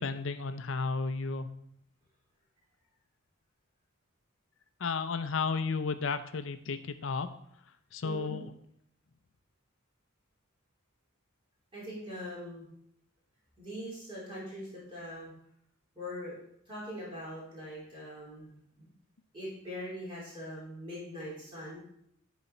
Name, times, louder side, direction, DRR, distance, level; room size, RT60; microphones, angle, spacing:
voice 1, 0.0-1.5 4.8-7.3 7.9-8.5, left 4 dB, 65° left, 10 dB, 0.5 m, -33 dB
voice 2, 8.0-8.4 11.7-12.7 13.6-15.3 15.9-16.3 16.7-18.9 19.3-21.8, equal, 25° right, -7 dB, 3.0 m, -42 dB
11.0 x 4.1 x 4.3 m, 0.72 s
head